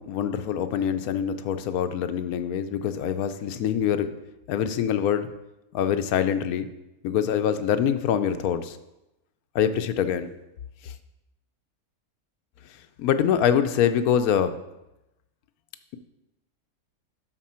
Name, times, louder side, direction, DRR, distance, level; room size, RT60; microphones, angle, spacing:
voice 1, 0.0-4.1 4.5-5.3 5.7-6.7 7.0-8.8 9.5-10.3 10.8-10.9 13.0-14.5, left 9 dB, 90° left, 9 dB, 1.1 m, -24 dB
12.0 x 4.4 x 4.3 m, 0.92 s
omnidirectional pair, 1.5 m